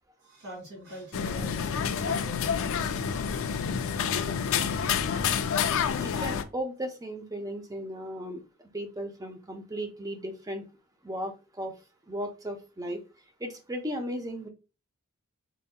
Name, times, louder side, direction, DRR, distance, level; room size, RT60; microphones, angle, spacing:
voice 1, 0.2-2.4, equal, 70° right, -4 dB, 2.4 m, -43 dB
sound 1, 1.1-6.4, left 7 dB, 65° left, 0.4 m, -28 dB
voice 2, 5.9-8.4 8.7-10.6 11.0-11.7 12.1-13.0 13.4-14.5, equal, 15° right, 5 dB, 0.7 m, -36 dB
3.9 x 3.8 x 2.2 m, 0.30 s
head